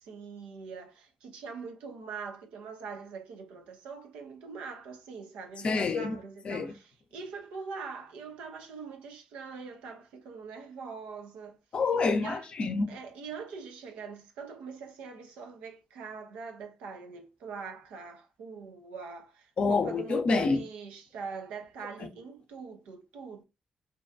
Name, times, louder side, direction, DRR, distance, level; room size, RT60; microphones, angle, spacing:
voice 1, 0.0-11.6 12.2-12.5 12.9-23.4, right 5 dB, 85° right, 0.5 m, -43 dB
voice 2, 5.6-6.1 6.5-6.7 11.7-12.9 19.6-20.6, left 4 dB, 60° left, 0.5 m, -27 dB
2.6 x 2.2 x 2.4 m
hypercardioid pair, 40°, 2 cm